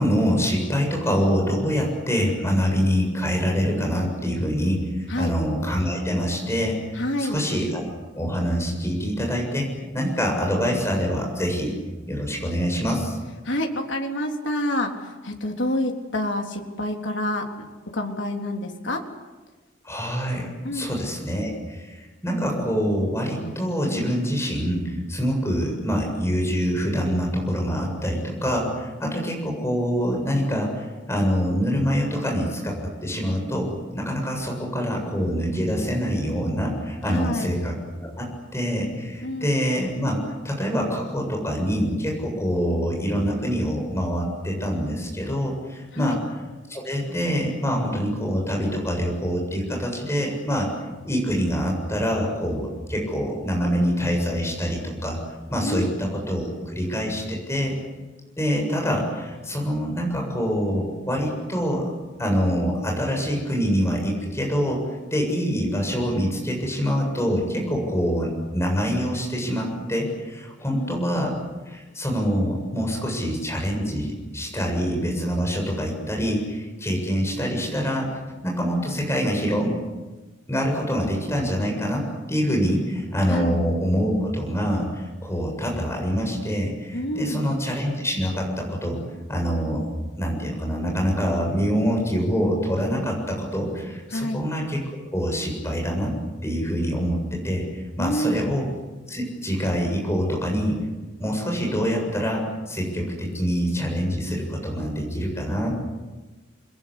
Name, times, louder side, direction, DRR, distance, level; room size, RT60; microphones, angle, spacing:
voice 1, 0.0-7.0 7.3-11.7 12.1-13.2 19.8-38.3 38.5-40.2 40.4-46.2 46.7-50.7 51.0-55.2 55.5-57.8 58.4-61.9 62.2-71.4 71.6-78.1 78.4-79.7 80.5-89.0 89.3-89.8 90.1-94.8 95.1-96.1 96.4-98.7 99.1-100.8 101.2-105.7, equal, 15° left, 0 dB, 7.6 m, -25 dB
voice 2, 6.9-7.4 13.4-17.5 17.9-19.0 20.6-20.9 29.0-29.4 37.1-37.5 39.2-39.5 45.9-46.2 55.6-56.0 70.7-71.0 83.3-83.6 86.9-87.5 94.1-94.4 98.0-98.5, left 1 dB, 70° left, 2 dB, 3.6 m, -28 dB
30.0 x 22.0 x 8.5 m, 1.2 s
head